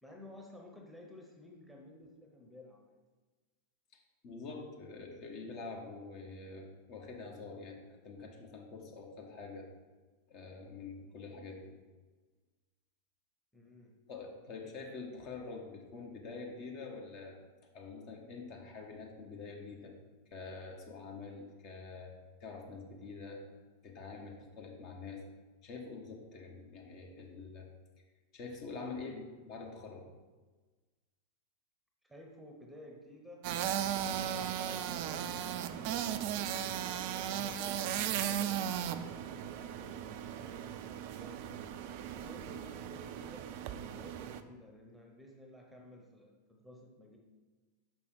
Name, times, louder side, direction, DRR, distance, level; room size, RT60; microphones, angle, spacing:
voice 1, 0.0-3.0 13.5-13.9 32.0-33.5 34.0-36.6 37.0-41.4 42.1-43.5 43.8-47.2, left 1 dB, ahead, 0 dB, 1.0 m, -54 dB
voice 2, 3.9-9.7 10.3-11.7 14.1-17.4 17.7-19.9 20.3-22.1 22.4-23.4 23.8-25.2 25.6-27.7 28.3-30.1, left 4 dB, 40° left, 1 dB, 1.1 m, -46 dB
sound 1, 33.4-44.4, right 10 dB, 45° right, 0.4 m, -37 dB
5.9 x 5.3 x 4.7 m, 1.3 s
figure-of-eight pair, 90°, 0 cm